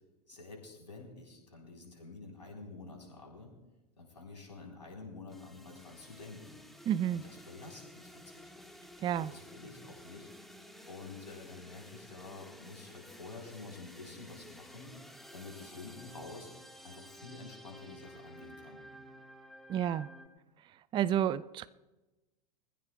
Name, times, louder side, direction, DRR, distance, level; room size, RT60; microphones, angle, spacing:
voice 1, 0.3-3.5 4.0-6.6 7.1-8.7 9.1-10.3 10.8-15.0 15.3-16.5 16.8-18.8, left 3 dB, 90° left, 4.2 m, -49 dB
sound 1, 5.3-20.3, equal, ahead, 1.6 m, -53 dB
voice 2, 6.9-7.2 9.0-9.3 19.7-20.1 20.9-21.7, right 10 dB, 25° right, 0.4 m, -30 dB
25.0 x 15.5 x 2.3 m
figure-of-eight pair, 90°, 21 cm